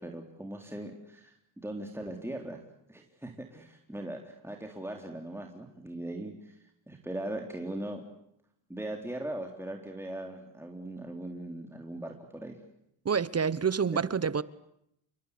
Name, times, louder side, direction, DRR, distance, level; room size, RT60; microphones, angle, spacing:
voice 1, 0.0-2.6 2.9-6.6 6.9-8.0 8.7-12.6, right 1 dB, 5° right, 3.8 m, -39 dB
voice 2, 13.0-14.4, right 6 dB, 30° right, 1.0 m, -27 dB
29.0 x 23.0 x 8.5 m
cardioid pair, 85°, 47 cm